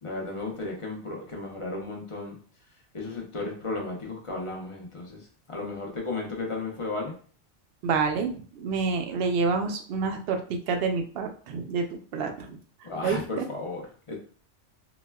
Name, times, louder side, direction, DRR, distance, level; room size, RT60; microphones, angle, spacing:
voice 1, 0.0-2.4 2.9-7.2 12.8-14.2, left 3 dB, 35° left, -1 dB, 0.5 m, -34 dB
voice 2, 7.8-12.6 13.0-13.4, right 4 dB, 65° right, 5 dB, 0.7 m, -28 dB
4.0 x 2.1 x 2.2 m, 0.43 s
omnidirectional pair, 1.2 m